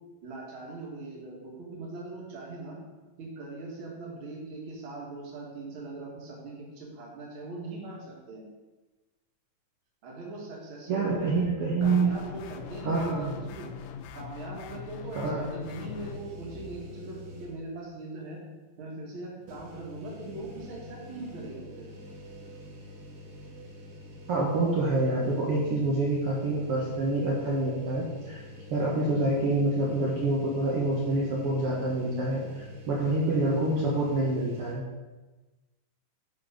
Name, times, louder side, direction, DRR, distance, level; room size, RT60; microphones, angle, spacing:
voice 1, 0.2-2.8 3.2-8.4 10.0-11.5 11.8-13.7 14.1-18.4 18.8-21.9, right 2 dB, 40° right, -3 dB, 2.2 m, -41 dB
voice 2, 10.9-12.1 12.8-13.3 15.2-15.5 24.3-28.4 28.7-34.8, right 2 dB, 60° right, -4 dB, 1.5 m, -27 dB
sound 1, 11.8-16.2, left 8 dB, 80° left, 2.0 m, -42 dB
sound 2, 15.6-17.8 18.2-18.3 19.4-34.7, left 1 dB, 80° right, 3.8 m, -46 dB
10.5 x 4.1 x 5.2 m, 1.2 s
omnidirectional pair, 4.3 m